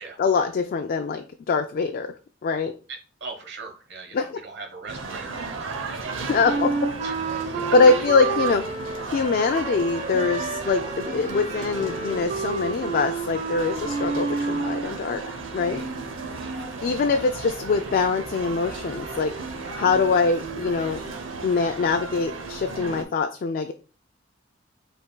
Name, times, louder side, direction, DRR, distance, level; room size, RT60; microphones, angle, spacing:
voice 1, 0.2-2.1 2.4-2.7 4.1-4.3 6.3-6.9 7.7-8.6 9.0-15.8 16.8-19.4 19.7-21.0 21.4-23.7, left 4 dB, 50° left, 6 dB, 0.3 m, -23 dB
voice 2, 2.9-6.4 7.0-7.8 15.7-15.9 16.3-16.7, right 4 dB, 60° right, 3 dB, 1.1 m, -40 dB
sound 1, 4.9-23.0, right 4 dB, 80° right, 0.7 m, -34 dB
Wind instrument woodwind instrument, 6.4-14.9, right 4 dB, 45° right, 0.7 m, -30 dB
5.4 x 3.4 x 2.2 m, 0.36 s
head